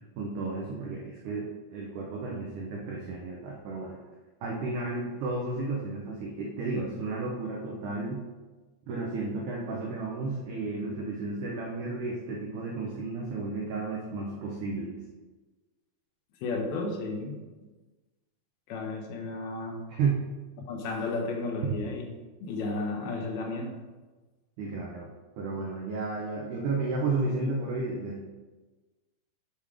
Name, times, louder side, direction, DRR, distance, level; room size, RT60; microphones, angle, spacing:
voice 1, 0.2-4.0 4.4-8.2 8.9-14.9 20.0-20.2 21.6-21.7 24.6-25.1 25.4-28.3, right 3 dB, 85° right, -2 dB, 1.8 m, -32 dB
voice 2, 16.4-17.4 18.7-19.9 20.6-22.1 22.4-23.8, left 3 dB, 75° left, 1 dB, 2.6 m, -33 dB
7.2 x 3.5 x 4.8 m, 1.2 s
omnidirectional pair, 4.6 m